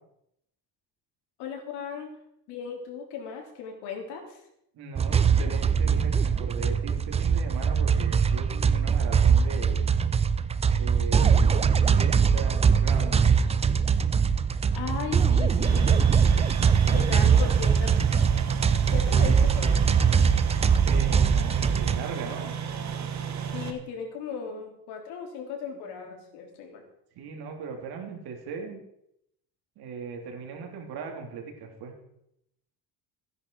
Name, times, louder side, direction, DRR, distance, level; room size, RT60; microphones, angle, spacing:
voice 1, 1.4-2.1 2.5-4.4 14.5-16.0 16.9-18.0 18.9-19.8 23.5-26.9, left 6 dB, 80° left, 2 dB, 3.5 m, -37 dB
voice 2, 4.7-9.8 10.7-13.2 15.1-15.6 17.2-17.5 20.8-22.6 27.1-28.8 29.8-31.9, right 5 dB, 70° right, 2 dB, 3.2 m, -38 dB
sound 1, 5.0-22.0, right 6 dB, 15° right, 0.4 m, -22 dB
sound 2, 15.6-23.7, right 8 dB, 45° right, 1.7 m, -33 dB
15.0 x 10.5 x 4.7 m, 0.78 s
cardioid pair, 135°, 39 cm